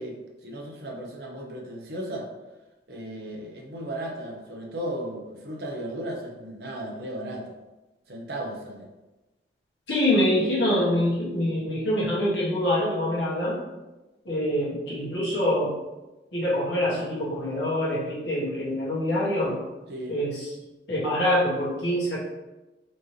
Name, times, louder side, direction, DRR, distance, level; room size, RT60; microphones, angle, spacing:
voice 1, 0.0-2.3 2.9-7.5 8.1-8.9 19.9-20.2, right 1 dB, 60° right, -1 dB, 0.8 m, -35 dB
voice 2, 9.9-13.6 14.2-15.7 16.3-19.6 20.1-20.5 20.9-22.2, left 1 dB, 80° left, -7 dB, 1.3 m, -25 dB
4.4 x 2.9 x 3.2 m, 1.1 s
head